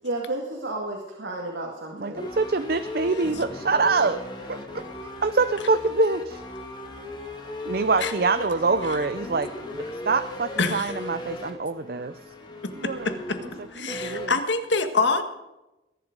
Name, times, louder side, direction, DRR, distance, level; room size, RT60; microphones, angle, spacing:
voice 1, 0.0-2.3, right 2 dB, 85° right, -1 dB, 2.4 m, -32 dB
voice 2, 2.0-4.2 4.5-6.4 7.7-12.2 12.8-13.1 13.8-14.3, right 3 dB, 50° right, 11 dB, 0.6 m, -25 dB
sound 1, 2.1-14.3, left 1 dB, 25° left, 2.4 m, -37 dB
voice 3, 10.6-11.0 13.0-13.4 13.7-15.2, left 3 dB, 75° left, 7 dB, 1.8 m, -25 dB
21.0 x 11.0 x 5.3 m, 0.99 s
head